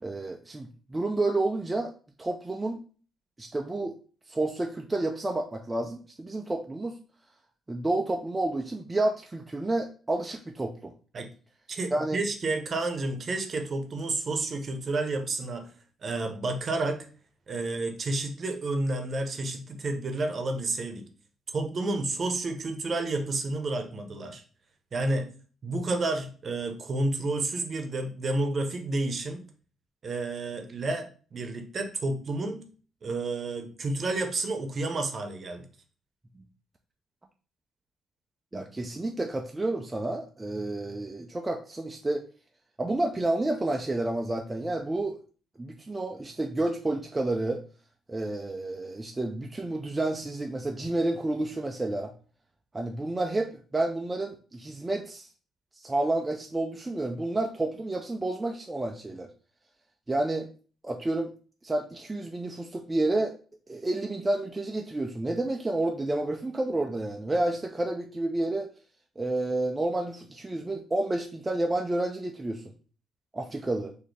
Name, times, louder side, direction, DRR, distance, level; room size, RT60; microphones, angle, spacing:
voice 1, 0.0-1.9 2.2-2.8 3.4-4.0 4.3-7.0 7.7-10.9 11.9-12.2 38.5-42.3 42.8-45.2 45.6-47.6 48.1-52.1 52.7-55.3 55.8-59.3 60.1-60.5 60.8-61.3 61.6-63.4 63.7-68.7 69.2-72.6 73.3-73.9, right 2 dB, 20° right, 2 dB, 0.4 m, -30 dB
voice 2, 11.7-15.7 16.0-17.1 17.5-21.0 21.5-24.4 24.9-25.3 25.6-29.4 30.0-32.6 33.0-35.6, right 2 dB, 45° right, 6 dB, 0.8 m, -30 dB
4.1 x 2.7 x 3.2 m, 0.39 s
cardioid pair, 90°, 0 cm